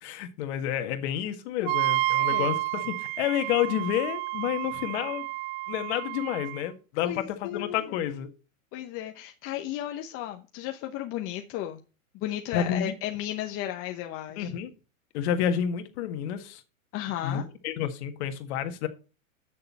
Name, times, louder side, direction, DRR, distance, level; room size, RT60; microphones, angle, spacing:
voice 1, 0.0-5.3 5.7-8.3 12.5-12.9 14.4-14.7 15.1-16.6 17.2-18.9, left 10 dB, 50° left, 1.7 m, -30 dB
Wind instrument woodwind instrument, 1.7-6.6, right 18 dB, 45° right, 0.5 m, -30 dB
voice 2, 7.0-7.8 8.7-11.8 12.2-14.5 16.9-17.4, left 12 dB, 35° left, 0.9 m, -34 dB
9.2 x 6.6 x 4.3 m
hypercardioid pair, 125°, 41 cm